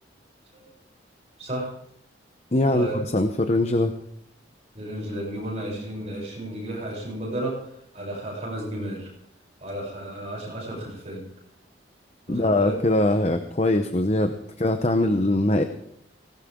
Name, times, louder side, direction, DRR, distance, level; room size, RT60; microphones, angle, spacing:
voice 1, 1.4-1.7 2.7-3.0 4.7-7.6 7.9-9.1 9.6-11.2 12.3-12.8, right 1 dB, 35° right, -3 dB, 8.0 m, -33 dB
voice 2, 2.5-2.9 3.1-3.9 12.3-15.6, left 1 dB, 35° left, 7 dB, 0.9 m, -22 dB
19.0 x 18.5 x 3.8 m, 0.72 s
head